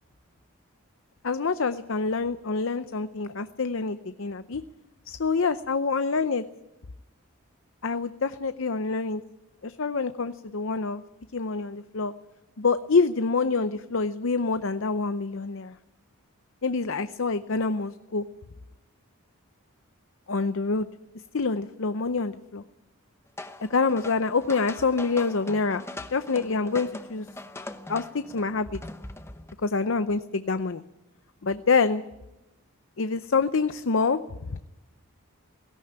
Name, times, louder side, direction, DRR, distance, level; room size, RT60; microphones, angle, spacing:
voice 1, 1.2-4.6 5.1-6.4 7.8-9.2 9.6-11.0 11.3-12.1 12.6-15.7 16.6-18.2 20.3-20.9 21.3-22.6 23.6-25.8 26.1-27.3 27.9-28.8 29.6-30.8 31.4-32.0 33.0-34.2 34.5-34.6, left 4 dB, 60° left, 12 dB, 0.6 m, -26 dB
sound 1, 23.4-29.5, left 2 dB, 10° left, 0.9 m, -41 dB
17.5 x 17.0 x 8.8 m, 0.94 s
head